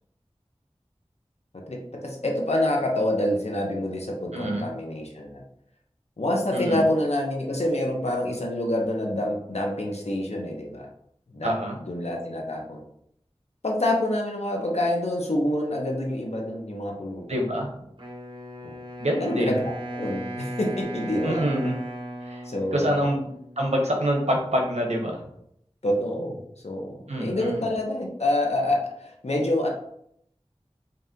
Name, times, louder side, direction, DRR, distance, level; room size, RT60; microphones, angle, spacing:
voice 1, 1.5-5.4 6.2-10.9 11.3-11.5 11.8-12.8 13.6-17.4 18.6-18.7 19.2-21.4 22.4-22.9 25.8-26.4 26.6-29.7, left 1 dB, 80° left, 0 dB, 0.9 m, -27 dB
voice 2, 4.3-4.7 6.5-6.8 11.4-11.8 17.3-17.7 19.0-19.6 21.2-21.8 22.2-22.4 22.7-23.3 23.6-25.2 27.1-27.7, equal, 90° right, 0 dB, 0.9 m, -26 dB
Wind instrument woodwind instrument, 18.0-23.9, right 1 dB, 50° right, 1.2 m, -37 dB
5.3 x 2.5 x 2.8 m, 0.73 s
wide cardioid pair, 45°, 11 cm